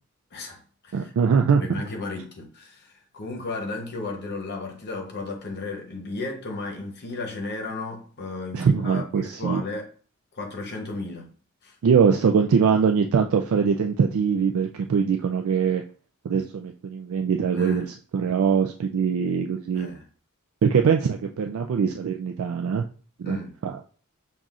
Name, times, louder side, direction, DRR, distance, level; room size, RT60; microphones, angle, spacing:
voice 1, 0.3-1.1 1.6-9.9 10.3-11.3 11.6-11.7 17.5-17.9 19.7-20.0 23.2-23.5, left 3 dB, 50° left, 0.9 m, -34 dB
voice 2, 0.9-1.8 8.5-9.6 11.8-15.8 16.2-17.9 18.1-19.9 20.6-22.8 23.2-23.4 23.6-23.8, right 6 dB, 65° right, 0.3 m, -22 dB
5.5 x 2.3 x 2.4 m
head